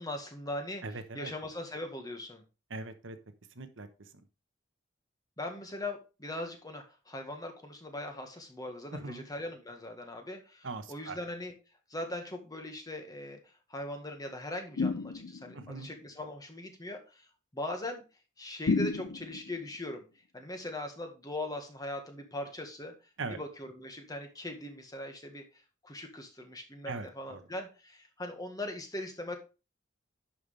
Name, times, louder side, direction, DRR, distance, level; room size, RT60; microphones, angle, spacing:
voice 1, 0.0-0.8 1.1-2.4 5.4-11.5 11.9-17.3 17.5-18.0 18.4-20.0 20.3-22.9 23.3-25.4 25.8-29.4, left 1 dB, 20° left, 1.7 m, -40 dB
voice 2, 0.8-1.3 2.7-3.2 3.6-3.9 8.9-9.3 10.6-11.2 15.5-15.9 23.2-23.4 26.9-27.4, right 3 dB, 90° right, 1.1 m, -40 dB
sound 1, 14.8-15.6 18.7-19.6, left 4 dB, 90° left, 0.6 m, -31 dB
10.5 x 5.8 x 3.4 m
head